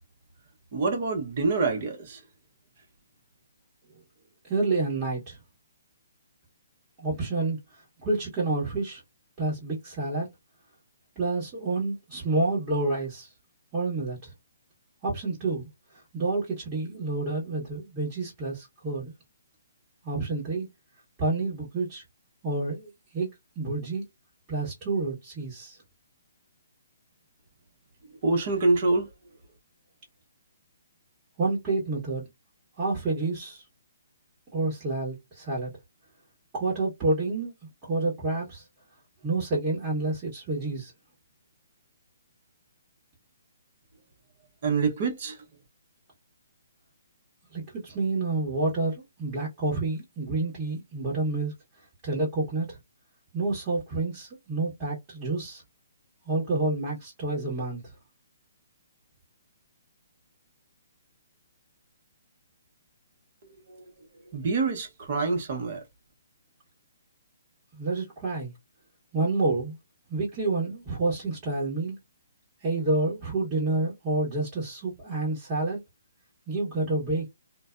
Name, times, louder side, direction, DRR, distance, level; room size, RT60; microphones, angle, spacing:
voice 1, 0.7-2.2 28.2-29.1 44.6-45.4 63.7-63.8 64.3-65.8, right 3 dB, 45° right, 1.1 m, -26 dB
voice 2, 4.5-5.4 7.0-7.6 8.0-9.0 9.4-10.3 11.2-13.3 13.7-14.3 15.0-15.7 16.1-19.1 20.0-20.7 21.2-22.0 22.4-23.3 23.5-24.0 24.5-25.8 31.4-32.3 32.8-33.6 34.5-35.7 36.5-37.5 37.8-38.7 39.2-40.9 47.5-51.5 52.0-52.8 53.3-55.6 56.2-57.9 67.7-68.5 69.1-69.7 70.1-72.0 72.6-75.8 76.5-77.3, right 3 dB, 25° right, 1.3 m, -29 dB
2.5 x 2.2 x 2.5 m
hypercardioid pair, 150°, 0 cm